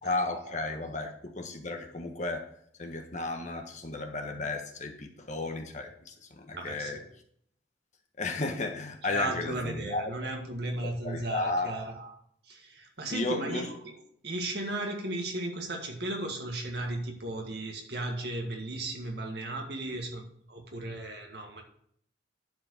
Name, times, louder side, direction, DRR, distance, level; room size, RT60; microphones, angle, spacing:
voice 1, 0.0-2.5 2.8-7.0 8.2-10.0 11.0-11.8 13.1-13.7, left 2 dB, 40° left, 4 dB, 1.4 m, -34 dB
voice 2, 6.5-7.1 9.1-12.1 12.4-14.0 14.2-21.6, right 1 dB, 60° right, 2 dB, 1.9 m, -35 dB
10.5 x 5.0 x 6.5 m, 0.67 s
head